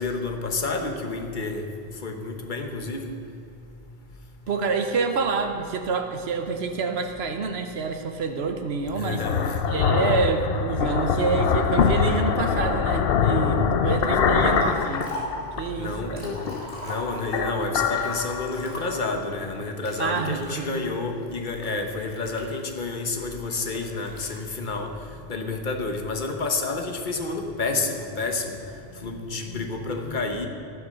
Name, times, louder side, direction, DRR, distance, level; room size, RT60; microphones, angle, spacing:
voice 1, 0.0-1.6 2.0-3.1 9.0-9.6 15.8-16.4 16.8-24.9 25.3-28.6 29.0-30.5, left 3 dB, 50° left, 4 dB, 1.3 m, -29 dB
voice 2, 4.5-9.2 9.7-15.1 15.6-16.3 20.0-20.9, right 5 dB, 80° right, 5 dB, 1.2 m, -27 dB
sound 1, 8.9-15.7 16.1-16.9 17.2-19.0, left 6 dB, 70° left, 0.9 m, -24 dB
Liquid, 14.4-15.4 15.9-17.4 17.9-19.1 19.8-20.6 21.2-22.9 23.7-24.4, equal, 85° left, 2.7 m, -40 dB
14.5 x 7.1 x 6.4 m, 2.5 s
omnidirectional pair, 1.1 m